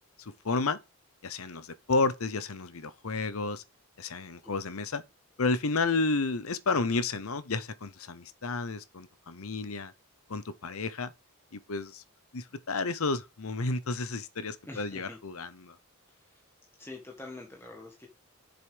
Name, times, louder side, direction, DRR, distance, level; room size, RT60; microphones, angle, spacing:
voice 1, 0.2-0.8 1.2-3.6 4.0-5.0 5.4-9.9 10.3-11.1 11.5-12.0 12.3-15.8, left 3 dB, 70° left, 0.9 m, -31 dB
voice 2, 14.6-15.2 16.1-16.4 16.8-18.1, left 2 dB, 10° left, 1.7 m, -45 dB
7.7 x 6.8 x 5.1 m
head